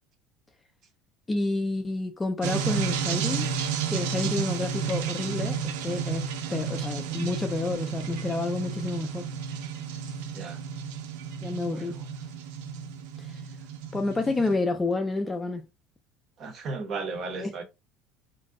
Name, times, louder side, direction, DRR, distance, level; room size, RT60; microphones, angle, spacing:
voice 1, 1.3-3.5 3.9-9.3 11.4-12.0 13.2-13.3 13.9-15.7 17.4-17.5, left 3 dB, 10° left, 0.3 m, -29 dB
sound 1, 2.4-14.5, right 7 dB, 90° right, 0.4 m, -32 dB
voice 2, 11.7-12.0 16.4-17.6, right 3 dB, 35° right, 0.7 m, -36 dB
2.6 x 2.0 x 3.5 m
cardioid pair, 160°, 0 cm